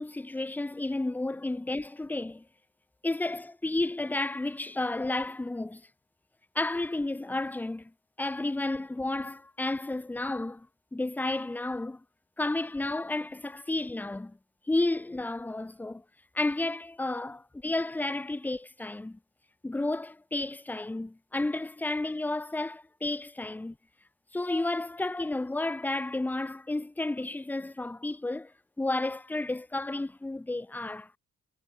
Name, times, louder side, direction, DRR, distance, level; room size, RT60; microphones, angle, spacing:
voice 1, 0.0-2.4 3.0-5.8 6.6-7.9 8.2-10.7 10.9-12.0 12.4-14.4 14.7-16.0 16.3-19.2 19.6-23.8 24.3-28.5 28.8-31.1, left 2 dB, 5° left, 0.4 m, -32 dB
cardioid pair, 90°, 30 cm